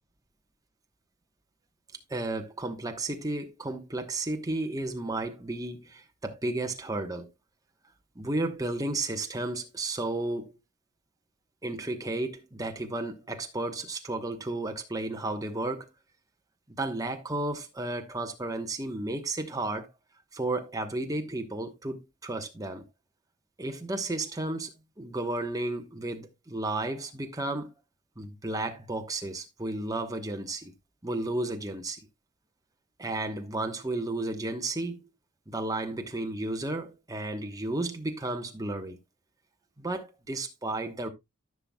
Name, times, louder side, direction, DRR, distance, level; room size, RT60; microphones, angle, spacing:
voice 1, 2.1-7.3 8.1-10.6 11.6-15.9 16.8-19.9 20.3-22.8 23.6-24.7 25.0-27.7 28.2-30.7 31.0-32.0 33.0-35.0 35.5-39.0 39.8-41.1, right 2 dB, 15° right, 1.1 m, -33 dB
14.0 x 5.9 x 2.3 m
head